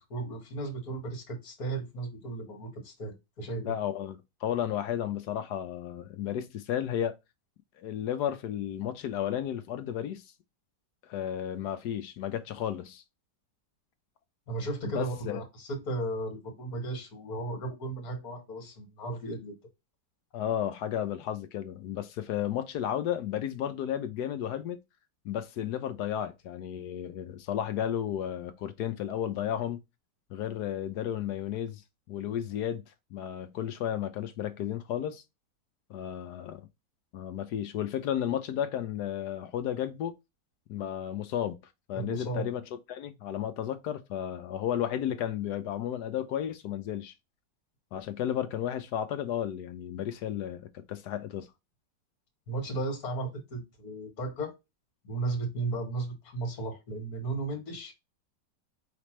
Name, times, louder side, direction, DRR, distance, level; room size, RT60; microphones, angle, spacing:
voice 1, 0.0-3.7 14.5-19.6 42.0-42.5 52.5-54.5 55.0-57.9, right 2 dB, 55° left, 2.1 m, -35 dB
voice 2, 3.6-7.2 7.8-10.2 11.0-13.0 14.8-15.4 20.3-24.8 25.2-29.8 30.3-31.8 32.1-32.8 33.1-35.2 35.9-36.7 37.1-40.2 40.7-41.6 41.9-42.6 42.9-47.1 47.9-51.5, left 10 dB, 75° left, 1.2 m, -33 dB
5.0 x 3.3 x 3.1 m
omnidirectional pair, 1.9 m